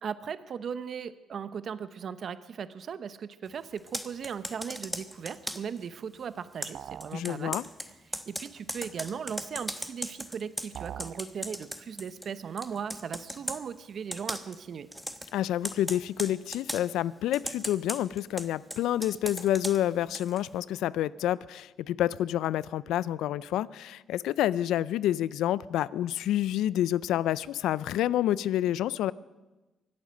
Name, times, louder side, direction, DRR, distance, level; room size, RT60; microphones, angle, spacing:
voice 1, 0.0-7.6 8.2-14.9, right 7 dB, 55° right, 13 dB, 0.8 m, -38 dB
Computer keyboard, 3.8-5.8 6.6-12.3 12.6-13.6 14.1-14.6 14.9-15.3 15.6-16.9 17.3-20.5, equal, ahead, 1.0 m, -38 dB
sound 1, 6.7-7.2 10.7-11.2, right 10 dB, 70° right, 0.4 m, -41 dB
voice 2, 7.1-7.6 15.3-29.1, left 12 dB, 85° left, 19 dB, 0.4 m, -28 dB
24.5 x 8.7 x 6.4 m, 1.1 s
cardioid pair, 90°, 0 cm